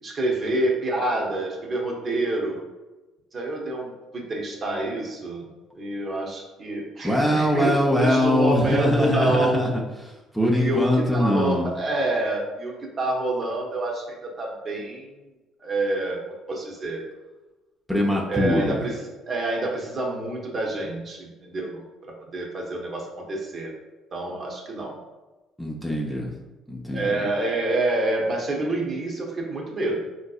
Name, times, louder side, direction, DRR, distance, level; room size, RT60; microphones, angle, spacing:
voice 1, 0.0-2.6 3.3-9.6 10.5-15.1 15.6-16.2 16.5-17.1 18.3-19.0 19.3-21.8 22.2-23.7 24.1-25.0 26.9-30.0, right 2 dB, 40° right, -1 dB, 0.8 m, -27 dB
voice 2, 7.0-11.7 17.9-18.8 25.6-26.3 26.7-27.1, left 1 dB, ahead, -3 dB, 0.5 m, -22 dB
3.9 x 2.7 x 2.3 m, 1.2 s
cardioid pair, 95°, 0 cm